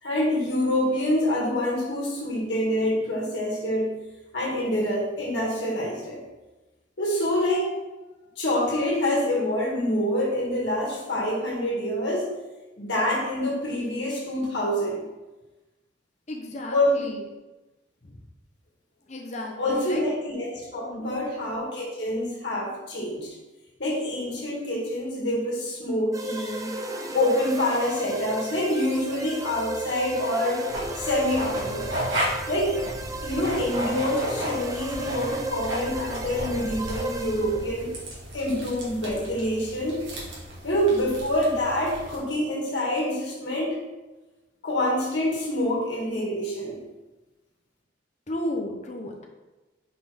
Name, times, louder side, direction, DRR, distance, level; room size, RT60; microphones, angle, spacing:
voice 1, 0.0-3.9 4.3-6.2 7.0-7.7 8.4-12.3 12.8-15.0 16.7-17.0 19.6-23.3 23.8-26.7 27.1-30.7 31.0-31.9 32.5-32.8 33.2-37.9 38.3-40.0 40.6-43.8 44.6-46.8, left 1 dB, 65° left, -3 dB, 2.1 m, -26 dB
voice 2, 16.3-17.2 18.0-18.2 19.1-20.0 20.8-21.2 48.3-49.2, left 1 dB, 35° left, 1 dB, 0.8 m, -34 dB
sound 1, 26.1-37.9, right 2 dB, 15° right, 0.4 m, -35 dB
sound 2, 30.7-42.2, equal, 75° right, 2.0 m, -34 dB
5.6 x 4.2 x 5.2 m, 1.1 s
head